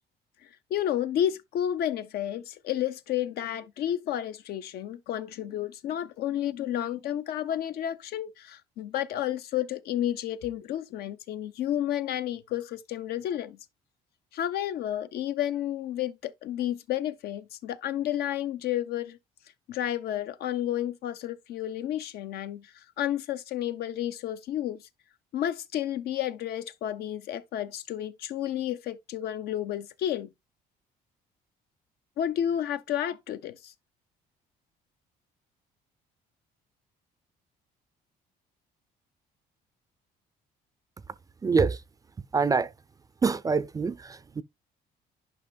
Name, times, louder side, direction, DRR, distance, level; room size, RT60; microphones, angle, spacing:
voice 1, 0.7-13.6 14.3-19.2 19.7-24.8 25.3-30.3 32.2-33.7, left 11 dB, 70° left, 0.7 m, -31 dB
voice 2, 41.4-41.8 42.3-42.7 43.2-44.4, right 5 dB, 20° right, 0.4 m, -25 dB
10.5 x 5.3 x 2.2 m
cardioid pair, 110°, 17 cm